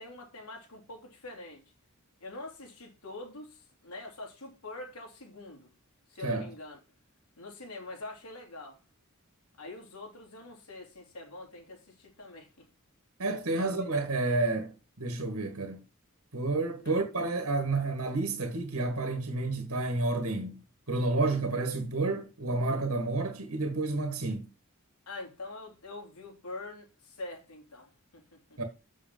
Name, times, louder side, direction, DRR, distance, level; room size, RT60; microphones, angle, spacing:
voice 1, 0.0-1.6 2.2-5.7 6.1-6.8 7.4-8.8 9.6-12.5 13.5-13.9 16.8-17.0 25.1-28.6, left 2 dB, 85° left, 3.3 m, -45 dB
voice 2, 13.2-15.8 16.3-20.6 20.9-24.5 28.6-28.7, right 2 dB, 75° right, 1.8 m, -30 dB
7.8 x 6.3 x 5.5 m
head